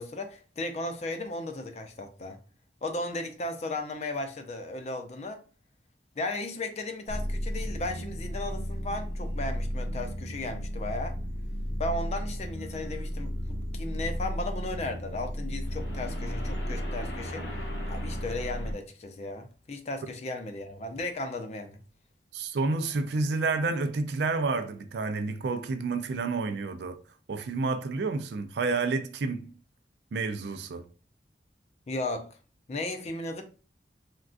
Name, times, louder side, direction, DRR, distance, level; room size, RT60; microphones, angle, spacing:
voice 1, 0.0-2.4 2.8-5.4 6.2-11.2 11.8-17.5 17.9-21.8 31.9-32.4 32.7-33.4, left 2 dB, 40° left, 0.4 m, -35 dB
sound 1, 7.1-18.7, equal, 85° left, 0.9 m, -34 dB
voice 2, 22.3-27.0 27.3-29.5 30.1-30.8, right 3 dB, 75° right, 0.4 m, -29 dB
3.6 x 2.3 x 2.4 m
head